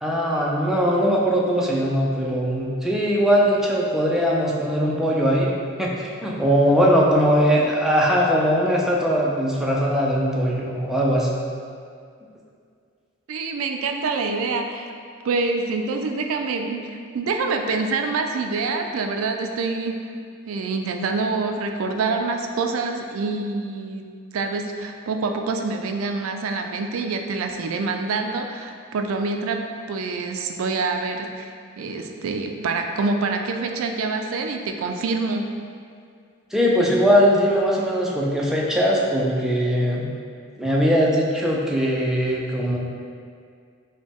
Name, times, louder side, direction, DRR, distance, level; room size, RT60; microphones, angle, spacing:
voice 1, 0.0-5.5 5.8-11.3 36.5-40.1 40.6-42.8, equal, ahead, -4 dB, 0.4 m, -20 dB
voice 2, 13.3-14.9 15.2-20.0 20.5-24.1 24.3-29.6 29.9-35.5, right 3 dB, 70° right, 4 dB, 0.4 m, -26 dB
5.1 x 2.1 x 3.5 m, 2.2 s
head